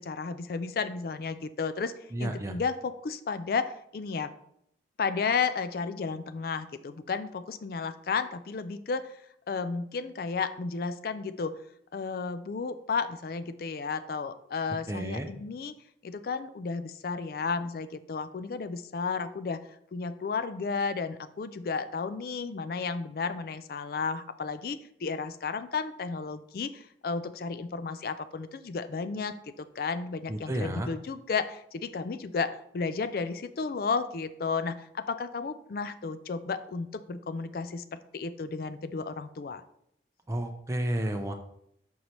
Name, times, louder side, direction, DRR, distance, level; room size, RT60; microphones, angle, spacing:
voice 1, 0.0-1.9 2.2-4.3 5.0-9.2 9.5-11.5 11.9-15.7 16.0-19.6 19.9-39.6, left 5 dB, 55° left, 11 dB, 0.4 m, -33 dB
voice 2, 2.1-2.5 14.9-15.3 30.3-30.9 40.3-41.3, right 1 dB, 15° right, 4 dB, 0.5 m, -31 dB
6.5 x 5.4 x 3.0 m, 0.72 s
head